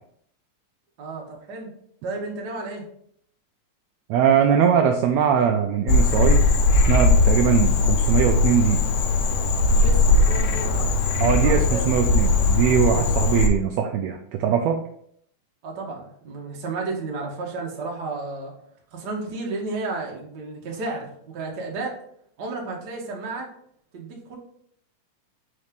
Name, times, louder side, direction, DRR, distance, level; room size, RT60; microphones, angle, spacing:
voice 1, 1.0-1.7 2.0-2.8 9.7-10.9 11.3-11.9 12.9-13.1 15.6-18.5 18.9-21.9 22.4-23.5 23.9-24.4, right 3 dB, 50° right, -1 dB, 1.3 m, -32 dB
voice 2, 4.1-6.4 6.9-8.8 11.2-14.8, right 8 dB, 85° right, 4 dB, 1.5 m, -21 dB
Frog, 5.9-13.5, left 3 dB, 75° left, 1.5 m, -19 dB
4.8 x 4.3 x 5.2 m, 0.66 s
omnidirectional pair, 3.6 m